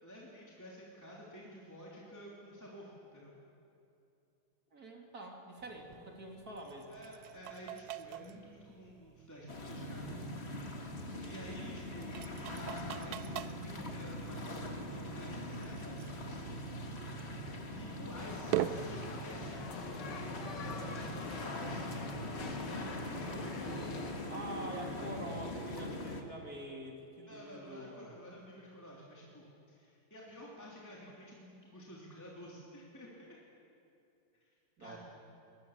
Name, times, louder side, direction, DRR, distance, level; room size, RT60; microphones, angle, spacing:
voice 1, 0.0-3.3 6.9-10.3 11.2-12.2 12.5-16.5 17.7-20.3 20.6-22.1 22.6-24.1 27.3-33.1 34.4-34.5 34.8-35.0, equal, 10° left, -5 dB, 2.9 m, -51 dB
voice 2, 4.7-7.0 10.9-12.1 24.3-28.1 34.8-35.0, right 1 dB, 45° right, 0 dB, 3.4 m, -46 dB
sound 1, 5.6-21.4, right 11 dB, 70° right, 0.9 m, -45 dB
sound 2, 9.5-26.2, left 1 dB, 35° left, 1.8 m, -42 dB
sound 3, 18.2-24.1, left 4 dB, 60° left, 2.1 m, -46 dB
23.0 x 21.0 x 7.3 m, 2.7 s
omnidirectional pair, 2.2 m